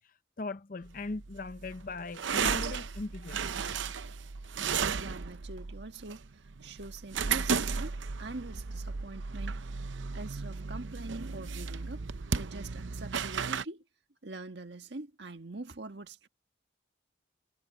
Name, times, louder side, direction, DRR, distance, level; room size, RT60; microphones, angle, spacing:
voice 1, 0.4-3.5, left 3 dB, 45° left, 0.7 m, -39 dB
sound 1, 0.8-13.6, right 5 dB, 85° right, 0.7 m, -35 dB
voice 2, 4.9-6.2 6.6-9.6 10.1-12.0 12.3-13.8 14.2-16.3, right 2 dB, 65° right, 1.6 m, -44 dB
head